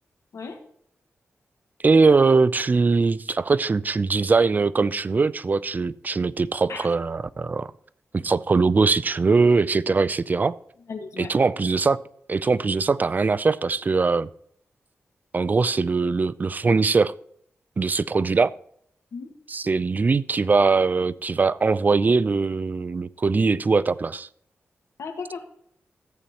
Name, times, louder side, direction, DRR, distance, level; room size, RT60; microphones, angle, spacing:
voice 1, 1.8-7.7 8.1-10.5 11.2-12.0 12.3-14.3 15.3-17.1 17.8-18.5 19.5-24.3, right 4 dB, 35° right, 0.4 m, -21 dB
voice 2, 10.9-11.5 19.1-19.3 25.0-25.4, left 5 dB, 85° left, 1.6 m, -35 dB
14.0 x 8.4 x 2.9 m
wide cardioid pair, 95°, 5 cm